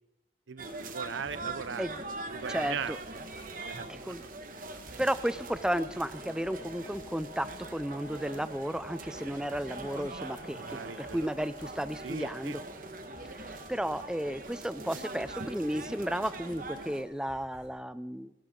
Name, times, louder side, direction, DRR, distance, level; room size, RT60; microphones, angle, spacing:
voice 1, 0.5-4.3 4.7-5.0 10.5-11.3 12.0-12.6, right 6 dB, 90° right, 16 dB, 0.7 m, -40 dB
sound 1, 0.6-17.0, right 2 dB, 45° right, 1.5 m, -42 dB
sound 2, 1.2-1.9 2.8-4.2 4.8-6.0 6.9-8.2 8.7-10.2 11.1-12.4 13.1-14.3 15.2-17.7, equal, 20° left, 4.1 m, -58 dB
voice 2, 2.5-3.0 3.9-4.2 5.0-12.6 13.2-18.3, equal, 5° right, 14 dB, 0.4 m, -33 dB
Wind instrument woodwind instrument, 6.2-11.9, equal, 85° left, 4.5 m, -53 dB
30.0 x 11.5 x 3.8 m, 0.99 s
head